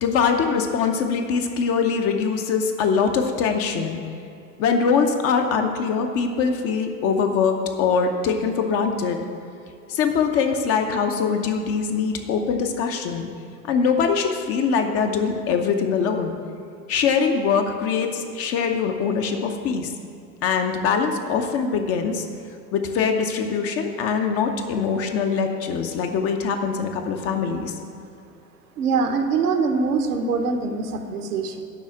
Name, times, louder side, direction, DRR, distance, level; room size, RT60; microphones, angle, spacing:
voice 1, 0.0-4.0 4.6-9.2 9.9-13.3 13.7-16.3 16.9-19.9 20.4-22.3 22.7-27.7, left 6 dB, 30° left, 5 dB, 0.7 m, -23 dB
voice 2, 28.8-31.6, right 4 dB, 65° right, 5 dB, 1.1 m, -23 dB
11.5 x 4.1 x 7.6 m, 2.6 s
figure-of-eight pair, 85°, 49 cm